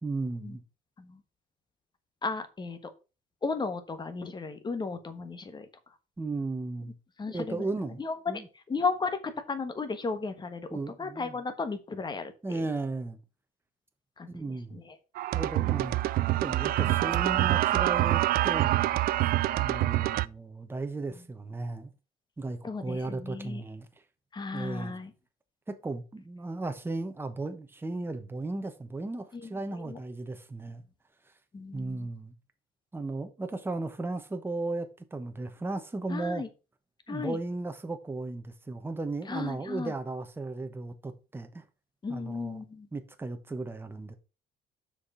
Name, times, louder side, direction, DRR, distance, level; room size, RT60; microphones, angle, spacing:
voice 1, 0.0-0.6 6.2-6.9 7.3-8.0 8.3-8.5 10.7-11.3 12.4-13.2 14.3-14.8 15.3-16.0 16.4-19.0 19.6-21.9 22.4-23.9 24.5-25.0 25.7-30.8 31.7-32.3 32.9-36.4 37.1-41.6 42.1-42.6 42.9-44.2, right 2 dB, 15° right, 1.1 m, -35 dB
voice 2, 2.2-2.9 3.4-5.7 7.2-7.7 8.0-8.4 8.7-12.6 14.2-15.0 16.8-17.0 22.6-23.6 24.3-25.1 29.3-30.0 31.5-32.1 36.1-36.5 37.1-37.4 39.2-39.9 42.0-42.9, left 4 dB, 25° left, 1.4 m, -35 dB
sound 1, 15.2-20.3, right 15 dB, 60° right, 0.4 m, -26 dB
6.3 x 5.0 x 5.6 m
cardioid pair, 110°, 17 cm